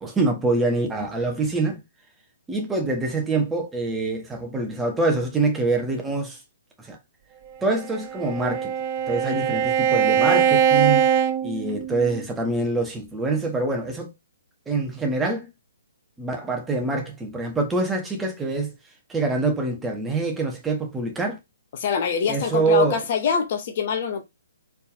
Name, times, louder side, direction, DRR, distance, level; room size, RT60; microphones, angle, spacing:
voice 1, 0.0-1.8 2.5-6.4 6.8-7.0 7.6-8.7 9.1-11.1 11.4-14.1 14.7-15.5 16.2-18.8 19.1-21.4 22.3-23.0, right 3 dB, 10° right, 1.0 m, -25 dB
Bowed string instrument, 7.8-12.2, right 8 dB, 30° right, 0.5 m, -22 dB
voice 2, 21.7-24.2, left 7 dB, 40° left, 0.7 m, -24 dB
4.4 x 3.4 x 2.6 m
figure-of-eight pair, 125°, 0 cm